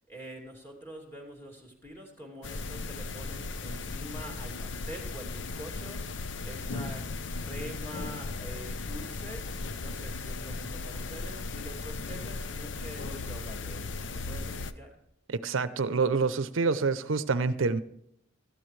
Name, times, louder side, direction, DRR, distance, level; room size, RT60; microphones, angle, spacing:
voice 1, 0.1-6.0 6.4-7.0 7.4-14.9, equal, 10° left, 1 dB, 2.6 m, -45 dB
sound 1, 2.4-14.7, left 3 dB, 65° left, 0.6 m, -37 dB
voice 2, 15.3-17.8, right 4 dB, 85° right, 14 dB, 0.6 m, -27 dB
17.0 x 13.0 x 3.2 m, 0.73 s
head